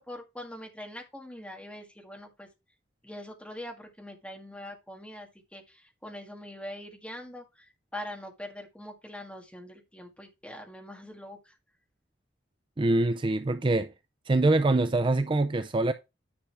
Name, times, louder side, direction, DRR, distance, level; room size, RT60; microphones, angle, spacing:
voice 1, 0.0-2.5 3.0-11.5, left 1 dB, 5° left, 1.9 m, -43 dB
voice 2, 12.8-13.9 14.3-15.9, right 2 dB, 25° right, 0.4 m, -24 dB
10.0 x 5.5 x 3.4 m
head